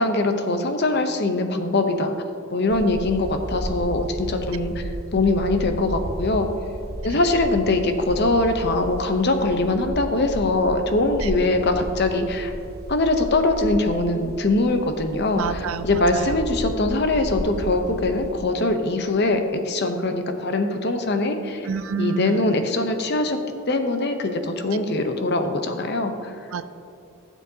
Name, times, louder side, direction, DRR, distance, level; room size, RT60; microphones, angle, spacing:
voice 1, 0.0-2.1 2.5-4.8 5.1-6.5 7.0-12.5 12.9-21.7 22.0-23.4 23.7-26.3, left 2 dB, 55° left, 6 dB, 0.8 m, -22 dB
sound 1, 2.7-18.3, right 1 dB, 50° right, 0.9 m, -34 dB
voice 2, 15.3-15.9 16.1-16.4 21.6-22.5 26.5-26.6, right 5 dB, 80° right, 13 dB, 0.4 m, -28 dB
15.5 x 7.3 x 2.8 m, 2.6 s
head